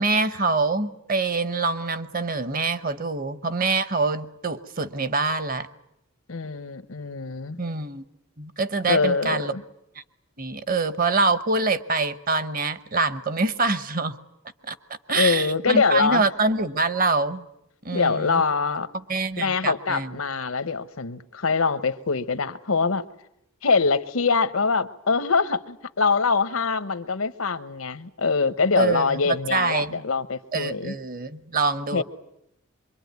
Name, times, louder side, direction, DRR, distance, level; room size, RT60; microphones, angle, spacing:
voice 1, 0.0-5.7 7.6-8.0 8.4-9.5 10.4-14.2 14.7-14.8 15.1-17.4 17.8-18.4 19.1-20.1 28.8-30.0 30.5-32.0, right 3 dB, 45° right, 1.0 m, -25 dB
voice 2, 6.3-7.6 8.9-9.6 15.1-16.2 17.9-18.9 19.4-23.0 23.6-30.9 31.9-32.0, left 4 dB, 85° left, 1.0 m, -24 dB
24.5 x 23.0 x 9.5 m
head